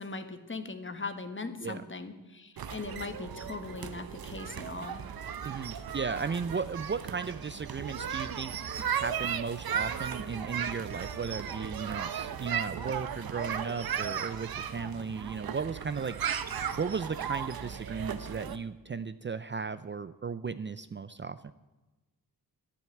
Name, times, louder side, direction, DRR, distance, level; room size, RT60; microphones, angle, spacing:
voice 1, 0.0-5.0, left 3 dB, 35° left, 9 dB, 1.4 m, -39 dB
sound 1, 2.6-18.6, right 8 dB, 80° right, 0.9 m, -36 dB
voice 2, 5.4-8.7 9.0-16.2 16.8-21.5, right 5 dB, 35° right, 13 dB, 0.5 m, -35 dB
11.5 x 10.5 x 9.2 m, 1.1 s
wide cardioid pair, 115°, 35 cm